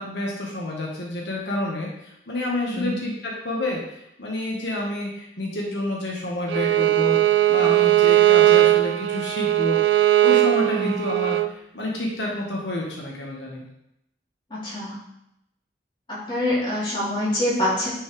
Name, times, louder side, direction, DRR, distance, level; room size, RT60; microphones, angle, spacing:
voice 1, 0.0-1.9 2.3-3.8 4.2-7.2 7.5-9.8 10.2-11.4 11.7-13.6, left 1 dB, 85° left, -2 dB, 1.6 m, -28 dB
Bowed string instrument, 6.5-11.5, right 14 dB, 85° right, 0.3 m, -18 dB
voice 2, 14.5-15.0 16.1-17.9, left 1 dB, 25° left, -8 dB, 2.9 m, -25 dB
9.5 x 5.5 x 3.4 m, 0.81 s
head